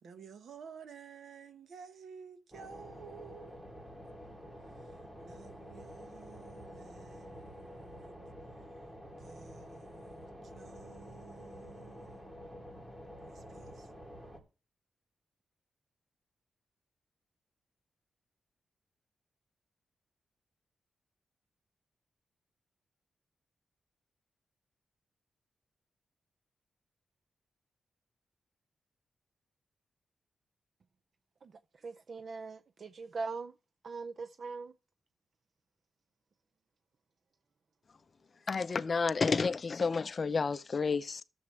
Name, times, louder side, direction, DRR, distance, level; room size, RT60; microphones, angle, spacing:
voice 1, 0.0-4.1 4.7-8.3 9.1-12.2 13.3-13.9, right 6 dB, 70° right, 1.2 m, -53 dB
sound 1, 2.5-14.4, equal, 10° right, 2.7 m, -49 dB
voice 2, 31.4-33.5 33.8-34.7, right 4 dB, 55° right, 0.5 m, -41 dB
voice 3, 38.5-41.2, left 4 dB, 45° left, 0.5 m, -30 dB
14.0 x 7.1 x 3.2 m
cardioid pair, 105°, 0 cm